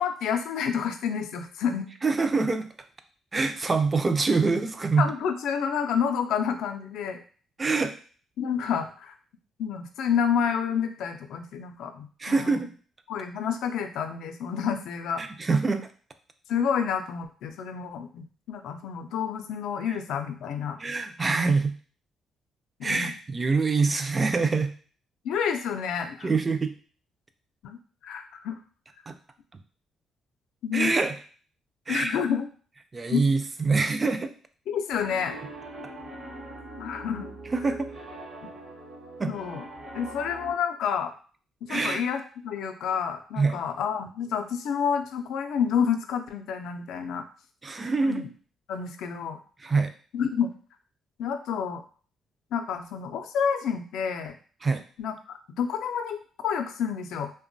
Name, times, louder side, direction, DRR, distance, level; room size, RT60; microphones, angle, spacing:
voice 1, 0.0-1.9 5.0-7.2 8.4-9.1 9.6-12.6 13.1-15.2 16.5-20.8 22.8-23.1 25.2-26.3 27.6-28.6 30.6-30.9 31.9-32.5 33.1-33.2 34.7-35.4 36.8-37.3 38.4-38.5 39.3-39.6 39.9-41.1 41.6-47.2 48.0-48.3 48.7-49.4 50.1-50.5 51.2-51.8 52.5-54.4 55.0-57.3, left 7 dB, 80° left, 6 dB, 0.3 m, -29 dB
voice 2, 2.0-2.7 3.3-5.1 7.6-7.9 12.2-12.7 15.2-15.9 20.8-21.7 22.8-24.7 26.2-26.7 29.1-29.2 30.7-31.2 31.9-32.2 32.9-34.3 37.5-37.9 39.2-39.3 41.7-42.0 43.4-43.6 47.6-48.3 49.6-49.9 54.6-54.8, right 4 dB, 30° right, 8 dB, 0.3 m, -25 dB
Piano, 34.9-40.5, right 2 dB, 50° right, 0.7 m, -42 dB
2.9 x 2.1 x 2.6 m, 0.41 s
cardioid pair, 90°, 0 cm